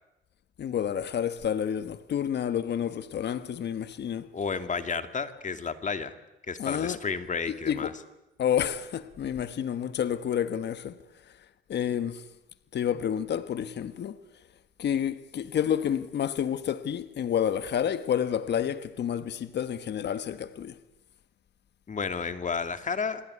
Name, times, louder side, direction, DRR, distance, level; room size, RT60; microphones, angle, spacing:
voice 1, 0.6-4.3 6.6-7.0 7.5-7.9 8.4-11.0 11.7-12.2 12.7-14.2 14.8-20.8, left 9 dB, 60° left, 1.3 m, -29 dB
voice 2, 4.3-6.2 6.5-7.9 21.9-23.2, left 5 dB, 40° left, 2.4 m, -31 dB
28.0 x 21.0 x 9.7 m
cardioid pair, 90°, 20 cm